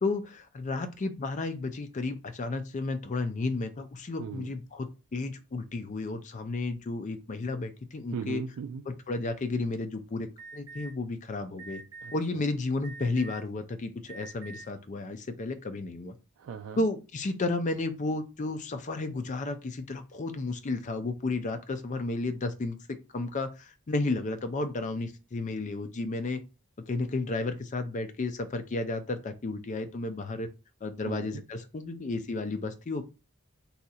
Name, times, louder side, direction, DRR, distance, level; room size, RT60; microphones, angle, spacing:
voice 1, 0.0-8.4 8.9-11.8 12.1-16.1 16.8-22.8 23.1-26.4 26.9-30.5 30.8-33.0, left 3 dB, 35° left, 0.4 m, -32 dB
voice 2, 4.2-4.5 8.1-8.8 12.0-12.1 16.4-16.9 31.0-31.4, right 6 dB, 70° right, 0.3 m, -38 dB
Alarm, 10.4-10.9 11.6-12.1 12.8-13.5 14.0-14.6, right 3 dB, 15° right, 0.7 m, -45 dB
2.7 x 2.4 x 4.0 m
head